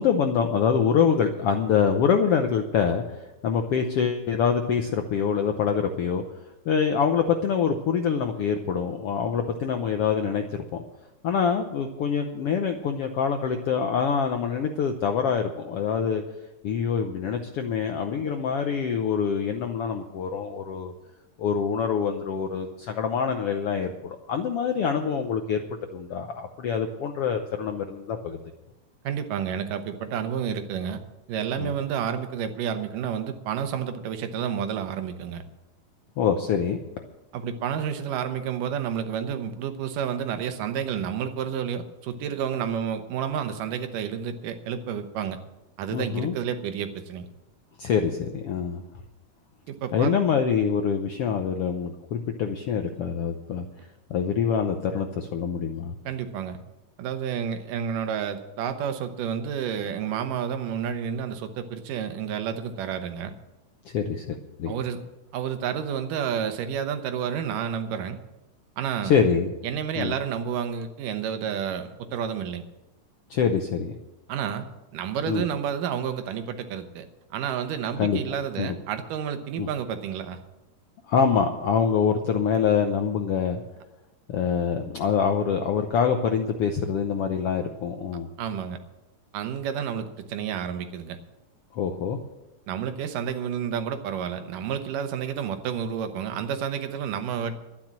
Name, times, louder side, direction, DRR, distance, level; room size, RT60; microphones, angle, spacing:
voice 1, 0.0-3.0 3.4-6.2 6.7-10.8 11.2-16.2 16.6-20.9 21.4-25.6 25.9-28.4 31.6-31.7 36.2-36.8 45.9-46.3 47.8-48.8 49.9-53.6 54.1-55.9 63.9-64.7 69.0-69.5 70.0-70.1 73.3-73.9 75.3-75.4 78.0-78.2 78.6-78.7 79.6-79.7 81.1-83.6 84.3-88.3 91.7-92.2, left 6 dB, 80° left, 5 dB, 1.3 m, -25 dB
voice 2, 29.0-31.0 31.3-35.4 37.3-45.4 45.8-47.3 49.7-50.1 56.1-56.6 57.0-63.3 64.7-65.0 65.3-68.2 68.8-69.1 69.6-72.6 74.3-74.7 74.9-80.4 88.4-88.8 89.3-91.2 92.7-97.5, right 8 dB, 85° right, 8 dB, 2.6 m, -30 dB
12.0 x 10.5 x 7.4 m, 0.99 s
omnidirectional pair, 3.7 m